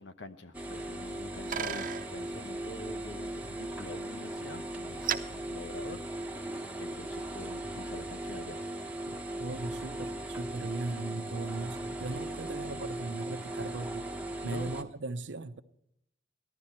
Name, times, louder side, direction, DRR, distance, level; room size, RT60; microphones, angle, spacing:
voice 1, 0.0-5.0 5.3-6.0 6.8-8.6 14.4-14.7, left 2 dB, 90° left, 1.0 m, -45 dB
sound 1, 0.5-14.8, right 1 dB, 10° right, 0.9 m, -38 dB
Bicycle, 0.8-6.6, right 8 dB, 50° right, 0.8 m, -41 dB
voice 2, 9.1-14.1 14.4-15.6, right 2 dB, 80° right, 0.7 m, -38 dB
14.5 x 12.0 x 4.4 m
head